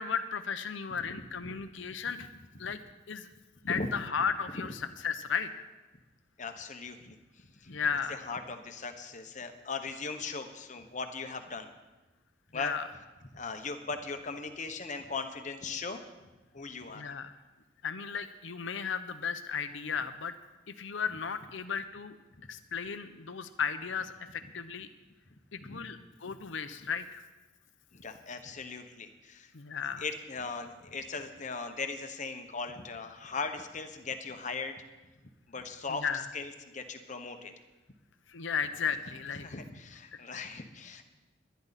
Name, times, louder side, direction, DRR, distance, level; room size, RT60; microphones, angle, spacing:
voice 1, 0.0-2.3 2.6-2.8 3.1-3.3 3.7-5.7 7.7-8.2 12.5-12.9 16.9-17.3 17.8-20.3 20.8-22.2 22.5-24.9 25.5-27.2 29.5-30.0 35.9-36.3 38.3-39.5 40.1-40.2, left 6 dB, 75° left, 10 dB, 0.7 m, -35 dB
voice 2, 6.4-7.2 7.6-7.8 8.3-11.7 12.5-12.7 13.3-16.0 16.5-17.1 25.6-25.8 26.3-26.4 27.9-29.5 30.0-34.7 35.5-36.0 36.3-37.5 39.4-41.0, left 4 dB, 40° left, 7 dB, 1.1 m, -39 dB
21.5 x 10.5 x 4.1 m, 1.1 s
head